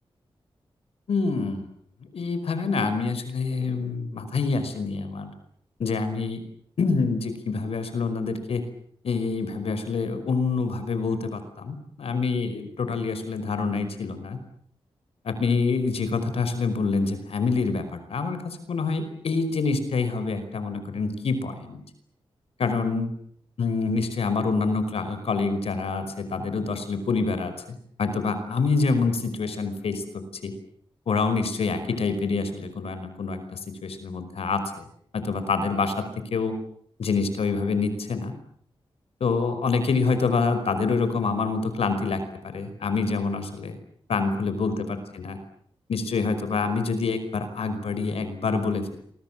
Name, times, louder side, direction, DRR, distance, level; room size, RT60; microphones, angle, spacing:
voice 1, 1.1-1.7 2.1-5.3 5.8-6.4 6.8-8.6 9.0-14.4 15.2-21.8 22.6-23.1 23.6-30.5 31.1-34.8 35.1-36.6 37.0-38.4 39.2-43.8 44.1-44.8 45.2-45.4 45.9-49.0, left 4 dB, 85° left, 10 dB, 5.2 m, -26 dB
28.5 x 24.0 x 7.5 m, 0.63 s
wide cardioid pair, 90°, 10 cm